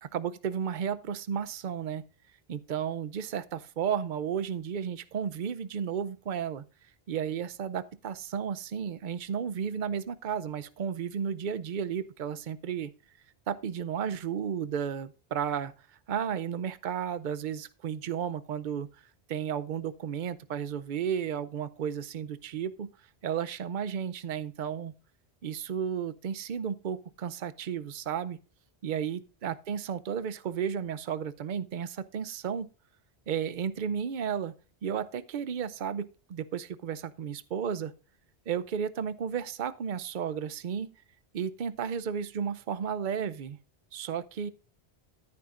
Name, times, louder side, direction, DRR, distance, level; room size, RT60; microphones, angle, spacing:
voice 1, 0.0-2.0 2.5-6.6 7.1-12.9 13.5-15.7 16.1-18.9 19.3-22.9 23.2-24.9 25.4-28.4 28.8-32.7 33.3-34.5 34.8-37.9 38.5-40.9 41.3-43.6 43.9-44.5, right 8 dB, 55° right, 0.7 m, -33 dB
12.5 x 10.5 x 2.5 m
omnidirectional pair, 1.1 m